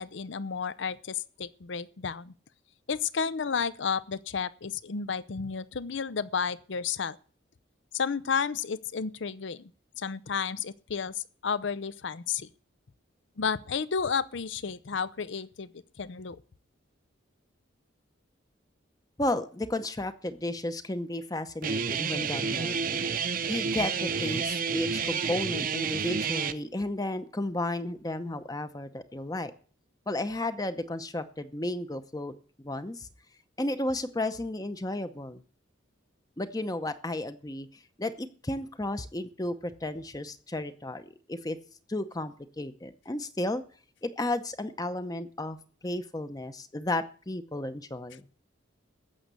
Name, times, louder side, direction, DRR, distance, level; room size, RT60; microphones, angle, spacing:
voice 1, 0.0-2.3 2.9-7.2 7.9-9.7 10.0-12.5 13.4-15.7 16.0-16.4, left 6 dB, 65° left, 0.6 m, -32 dB
voice 2, 19.2-22.8 23.5-29.5 30.1-32.3 32.6-33.1 33.6-35.4 36.4-41.6 41.9-43.6 44.0-45.6 45.8-48.2, left 1 dB, 20° left, 0.7 m, -33 dB
Guitar, 21.6-26.5, right 6 dB, 45° right, 0.8 m, -30 dB
15.0 x 6.5 x 8.3 m
head